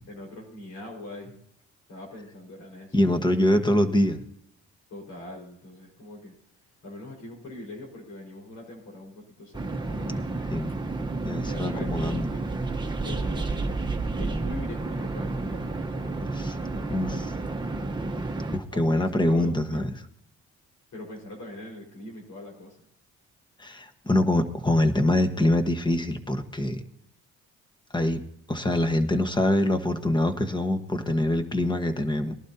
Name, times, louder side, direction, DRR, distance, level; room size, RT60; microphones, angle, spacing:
voice 1, 0.1-1.4 1.9-3.0 4.9-6.4 6.8-10.3 11.3-12.5 13.0-13.6 13.9-17.3 18.6-19.9 20.9-22.8, left 1 dB, 75° left, 0 dB, 5.1 m, -42 dB
voice 2, 2.9-4.2 10.5-10.7 11.2-12.2 16.3-16.5 16.9-17.1 18.5-19.8 23.6-26.8 27.9-28.2 28.5-32.3, left 1 dB, 15° left, 7 dB, 1.4 m, -24 dB
sound 1, 9.5-18.6, right 2 dB, 15° right, 1.1 m, -30 dB
20.0 x 11.5 x 2.9 m, 0.71 s
cardioid pair, 90°, 30 cm